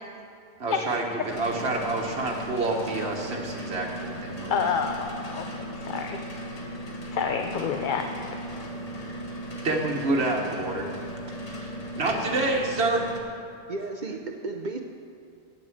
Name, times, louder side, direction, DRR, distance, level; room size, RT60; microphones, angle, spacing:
voice 1, 0.6-4.7 9.6-10.9 11.5-11.7 12.0-13.1 14.0-14.1, right 2 dB, 75° right, 0 dB, 1.5 m, -28 dB
sound 1, 1.3-13.2, equal, 40° left, 1.2 m, -37 dB
voice 2, 4.5-5.4 5.8-6.2 7.1-8.6, left 6 dB, 55° left, 5 dB, 0.7 m, -28 dB
voice 3, 13.7-14.8, right 3 dB, 50° right, 4 dB, 0.7 m, -33 dB
9.2 x 8.6 x 7.8 m, 2.3 s
omnidirectional pair, 1.1 m